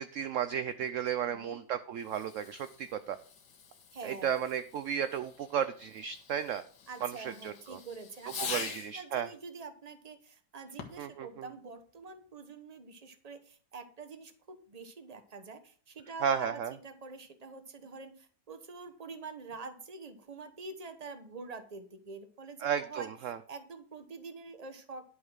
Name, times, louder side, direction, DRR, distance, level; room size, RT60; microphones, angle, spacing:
voice 1, 0.0-3.2 4.0-6.6 7.0-7.8 8.4-9.3 11.0-11.5 16.2-16.7 22.6-23.4, right 8 dB, 65° right, 11 dB, 0.8 m, -34 dB
voice 2, 1.2-1.6 3.9-4.3 6.9-23.1 23.5-25.1, right 4 dB, 25° right, 9 dB, 1.0 m, -46 dB
Fireworks, 2.0-9.1 10.7-11.2, left 6 dB, 85° left, 2.0 m, -45 dB
11.5 x 5.5 x 6.2 m, 0.44 s
omnidirectional pair, 1.9 m